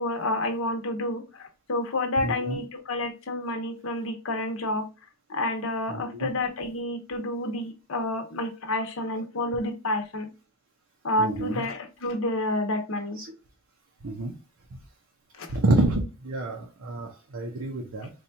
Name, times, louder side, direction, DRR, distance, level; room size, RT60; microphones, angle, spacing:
voice 1, 0.0-4.9 5.3-10.3 11.0-13.2 15.4-15.6, left 1 dB, 70° left, 5 dB, 0.9 m, -29 dB
voice 2, 2.2-2.6 5.9-6.3 11.2-11.6 13.2-13.3 14.0-14.3 14.7-14.8 15.5-18.1, right 2 dB, 65° right, 1 dB, 0.7 m, -28 dB
4.2 x 2.3 x 2.7 m, 0.29 s
head